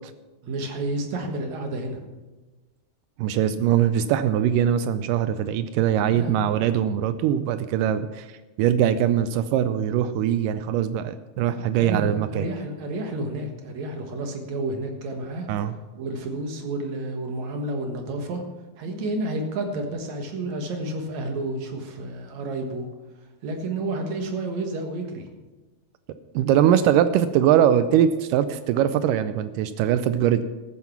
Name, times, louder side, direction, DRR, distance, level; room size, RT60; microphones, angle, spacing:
voice 1, 0.4-2.0 5.9-6.5 11.7-15.5 16.0-18.4 18.8-22.9 23.4-25.2 26.7-26.8, right 2 dB, 55° right, 4 dB, 2.4 m, -30 dB
voice 2, 3.2-8.3 8.6-12.5 15.5-15.7 18.9-19.0 26.4-30.4, right 10 dB, 85° right, 12 dB, 1.9 m, -22 dB
13.5 x 9.6 x 5.9 m, 1.2 s
omnidirectional pair, 4.5 m